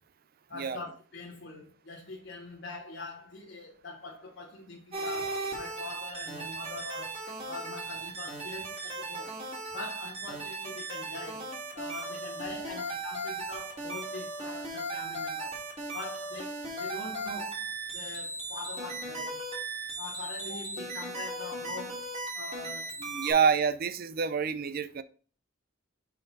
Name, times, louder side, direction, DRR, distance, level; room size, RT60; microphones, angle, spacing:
voice 1, 0.5-9.4 9.7-15.6 15.9-17.7 17.9-19.4 20.0-22.9, left 2 dB, 60° left, 1.3 m, -43 dB
sound 1, 4.9-23.3, right 2 dB, 30° right, 2.3 m, -37 dB
voice 2, 23.0-25.0, right 6 dB, 50° right, 0.4 m, -27 dB
6.4 x 4.3 x 4.0 m
head